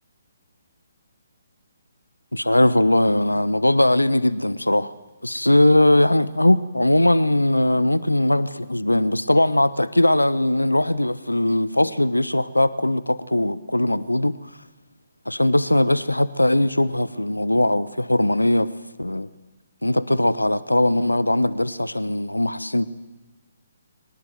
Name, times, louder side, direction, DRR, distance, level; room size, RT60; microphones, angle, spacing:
voice 1, 2.3-4.9 5.2-14.4 15.3-18.7 19.0-19.3 19.8-22.9, left 1 dB, 80° left, 17 dB, 1.0 m, -20 dB
23.5 x 19.0 x 9.4 m, 1.1 s
figure-of-eight pair, 135°, 0 cm